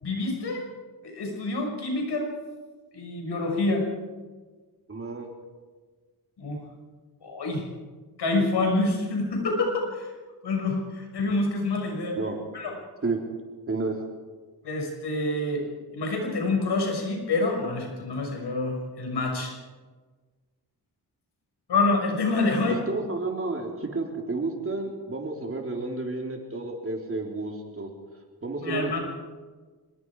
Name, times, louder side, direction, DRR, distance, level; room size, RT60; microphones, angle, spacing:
voice 1, 0.0-0.6 1.0-2.3 2.9-3.9 6.4-6.6 7.2-7.6 8.2-10.1 10.4-12.2 12.5-12.7 14.6-15.6 15.9-19.5 21.7-22.8 28.6-29.0, left 2 dB, 85° left, 2 dB, 6.1 m, -27 dB
voice 2, 4.9-5.3 12.2-12.4 13.0-13.2 13.7-14.0 22.7-27.9 28.4-29.0, right 3 dB, 35° right, 1 dB, 3.8 m, -31 dB
25.5 x 22.0 x 4.9 m, 1.4 s
wide cardioid pair, 125°, 39 cm